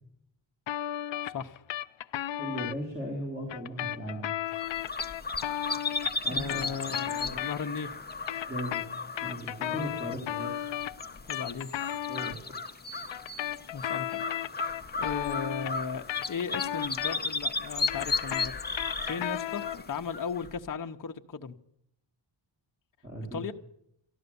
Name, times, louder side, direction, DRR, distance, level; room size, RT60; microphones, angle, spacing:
sound 1, 0.7-2.8 3.5-7.8 8.1-12.4 13.1-17.4 17.7-19.9, left 12 dB, 65° left, 0.5 m, -35 dB
voice 1, 1.2-1.6 6.3-7.9 9.7-9.9 11.3-11.7 13.7-14.2 14.9-21.5 23.3-23.5, left 6 dB, 40° left, 5 dB, 0.9 m, -36 dB
voice 2, 2.4-4.3 6.2-7.3 8.5-8.8 9.2-10.7 12.1-12.4 23.0-23.4, equal, 20° right, -2 dB, 3.3 m, -38 dB
sound 2, 4.5-20.6, left 3 dB, 20° left, 0.9 m, -35 dB
13.5 x 12.0 x 6.9 m, 0.73 s
wide cardioid pair, 130°, 48 cm